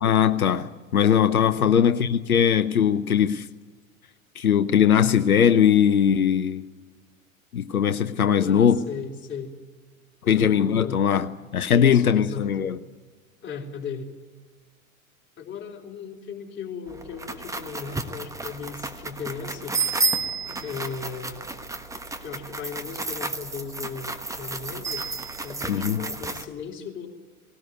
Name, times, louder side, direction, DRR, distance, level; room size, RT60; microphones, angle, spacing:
voice 1, 0.0-3.5 4.4-6.6 7.5-8.8 10.3-12.8 25.7-26.0, left 8 dB, 80° left, 0.8 m, -20 dB
voice 2, 8.3-9.5 10.2-11.1 11.7-12.5 13.4-14.1 15.4-19.8 20.5-21.5 22.2-25.1 25.4-27.1, left 6 dB, 25° left, 3.9 m, -37 dB
sound 1, 16.9-26.5, right 3 dB, 5° right, 1.3 m, -32 dB
19.5 x 18.5 x 9.4 m
figure-of-eight pair, 85°, 43 cm